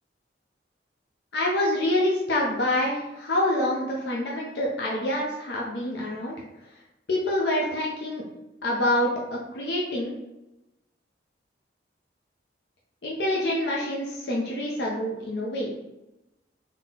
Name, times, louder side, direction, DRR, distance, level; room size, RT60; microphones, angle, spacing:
voice 1, 1.3-6.3 7.1-8.2 8.6-10.1 13.0-15.7, left 1 dB, 65° left, -3 dB, 0.7 m, -26 dB
3.7 x 2.8 x 3.9 m, 0.95 s
head